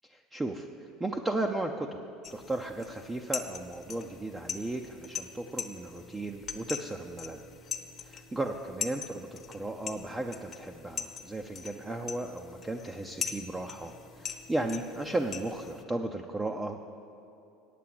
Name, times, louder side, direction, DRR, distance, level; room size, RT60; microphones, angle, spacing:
voice 1, 0.0-2.0 2.3-7.4 8.0-16.9, right 2 dB, 15° right, 3 dB, 0.5 m, -35 dB
sound 1, 2.2-15.8, left 6 dB, 35° left, 0.8 m, -42 dB
8.5 x 8.4 x 7.7 m, 2.8 s
supercardioid pair, 120°, 0 cm